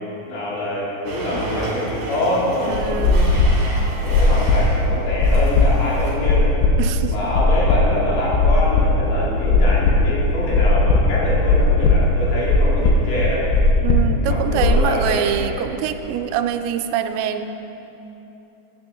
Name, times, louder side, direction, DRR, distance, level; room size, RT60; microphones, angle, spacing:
voice 1, 0.2-3.5 4.0-6.6 7.1-13.5 14.2-15.6 16.0-16.2, left 1 dB, 65° left, -7 dB, 4.5 m, -25 dB
Domestic sounds home sounds, 1.1-4.9 5.2-6.2, right 2 dB, 55° right, 3.4 m, -32 dB
sound 1, 2.7-14.8, left 3 dB, 90° left, 3.0 m, -18 dB
voice 2, 2.7-3.3 6.8-7.1 13.8-17.5, right 9 dB, 85° right, 8 dB, 2.8 m, -24 dB
18.0 x 9.8 x 3.7 m, 3.0 s
omnidirectional pair, 5.0 m